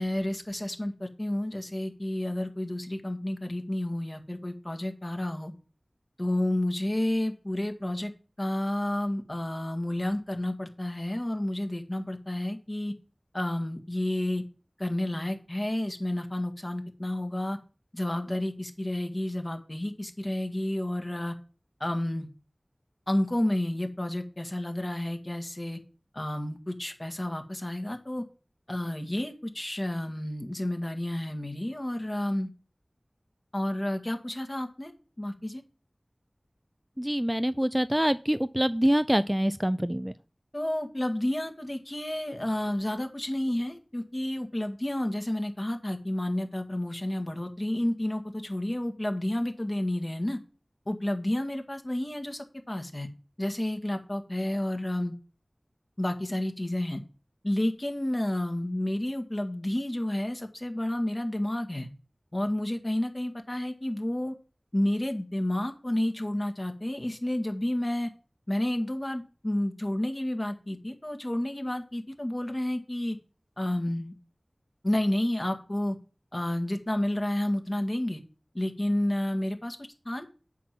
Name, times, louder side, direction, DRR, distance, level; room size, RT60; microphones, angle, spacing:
voice 1, 0.0-5.5 6.2-8.1 8.4-12.9 13.3-14.4 14.8-17.6 17.9-21.3 21.8-22.3 23.1-25.8 26.1-28.2 28.7-32.5 33.5-34.9 35.2-35.6 40.5-50.4 50.9-53.1 53.4-55.1 56.0-57.0 57.4-61.9 62.3-64.4 64.7-68.1 68.5-73.2 73.6-74.1 74.8-76.0 76.3-78.2 78.5-80.2, left 1 dB, 40° left, 1.8 m, -30 dB
voice 2, 37.0-40.1, equal, 10° right, 0.4 m, -25 dB
8.3 x 5.9 x 7.7 m
wide cardioid pair, 40°, 0 cm